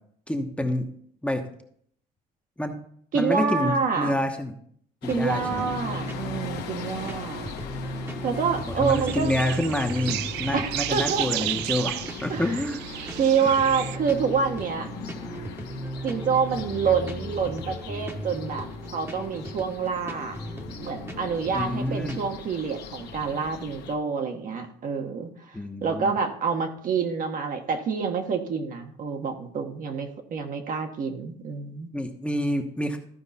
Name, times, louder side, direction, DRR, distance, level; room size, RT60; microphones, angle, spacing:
voice 1, 0.3-0.9 1.2-1.5 2.6-2.8 3.1-4.5 5.0-5.7 8.8-12.8 13.4-13.5 21.5-22.2 25.5-26.1 31.9-33.0, left 1 dB, 5° left, 3 dB, 1.0 m, -28 dB
voice 2, 3.1-4.2 5.1-7.5 8.2-9.4 10.5-11.3 12.3-12.6 13.2-14.9 16.0-18.7 18.9-20.4 20.8-31.9, right 6 dB, 55° right, 4 dB, 1.3 m, -27 dB
sound 1, 5.0-24.0, left 6 dB, 75° left, 1.2 m, -40 dB
sound 2, 5.1-22.3, right 1 dB, 15° right, 1.1 m, -37 dB
sound 3, 8.8-14.0, right 15 dB, 85° right, 0.4 m, -33 dB
14.0 x 4.7 x 4.2 m, 0.63 s
cardioid pair, 110°, 17 cm